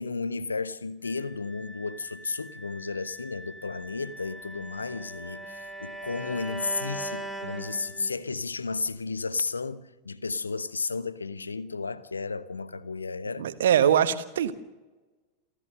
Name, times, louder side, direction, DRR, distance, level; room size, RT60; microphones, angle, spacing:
voice 1, 0.0-13.5, left 4 dB, 75° left, 1.1 m, -33 dB
Wind instrument woodwind instrument, 1.0-8.1, equal, 15° left, 6.9 m, -46 dB
Bowed string instrument, 4.1-8.3, right 2 dB, 5° right, 5.0 m, -40 dB
voice 2, 13.4-14.6, right 9 dB, 60° right, 1.3 m, -22 dB
28.5 x 13.5 x 6.7 m
figure-of-eight pair, 90°, 0 cm